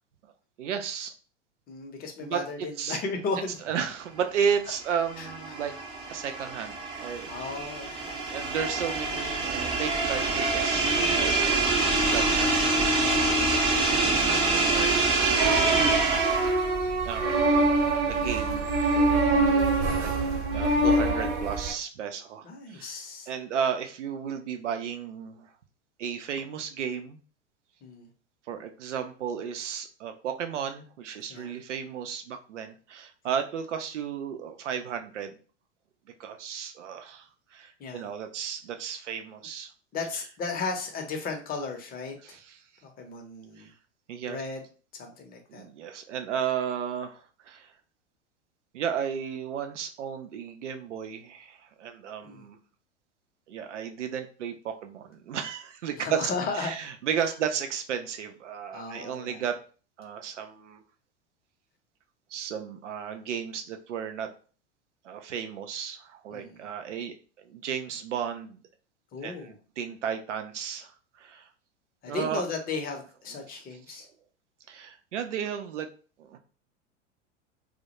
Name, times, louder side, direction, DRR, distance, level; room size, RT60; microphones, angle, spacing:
voice 1, 0.6-1.1 2.2-2.4 2.8-3.0 3.6-5.7 6.1-7.3 8.3-11.7 12.1-12.6 13.4-15.8 17.0-18.7 18.9-20.1 20.5-23.0 23.3-25.5 26.0-27.2 28.5-35.4 36.2-39.7 40.1-40.2 42.2-42.6 43.6-43.7 44.1-44.4 45.5-47.7 48.7-52.6 53.5-59.6 60.0-60.8 62.3-64.3 65.0-67.1 67.4-68.6 69.2-70.9 71.2-71.5 72.1-72.4 73.5-73.6 73.9-74.0 74.7-75.9 76.2-76.4, right 8 dB, 80° right, 7 dB, 0.5 m, -34 dB
voice 2, 1.7-3.5 5.2-5.3 7.3-8.2 12.3-13.5 22.4-23.3 27.8-28.1 31.3-31.6 37.8-38.1 39.9-42.1 42.8-43.7 44.3-44.6 44.9-45.6 52.2-52.4 56.0-56.7 58.7-59.4 66.3-66.6 69.1-69.6 72.0-74.1, left 4 dB, 25° left, 3 dB, 0.6 m, -35 dB
sound 1, 4.7-16.6, right 3 dB, 15° right, 0.3 m, -26 dB
sound 2, 15.4-21.7, right 2 dB, 40° right, 0.8 m, -24 dB
2.2 x 2.1 x 2.9 m, 0.39 s
hypercardioid pair, 90°, 36 cm